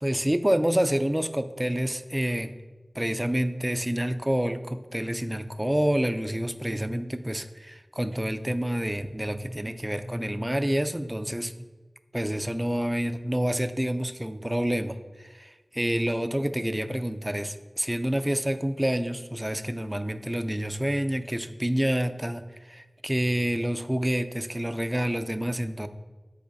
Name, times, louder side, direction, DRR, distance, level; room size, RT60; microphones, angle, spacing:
voice 1, 0.0-2.5 2.9-11.7 12.1-25.9, equal, 15° right, 9 dB, 0.5 m, -28 dB
13.5 x 4.8 x 2.7 m, 1.2 s
wide cardioid pair, 40°, 0 cm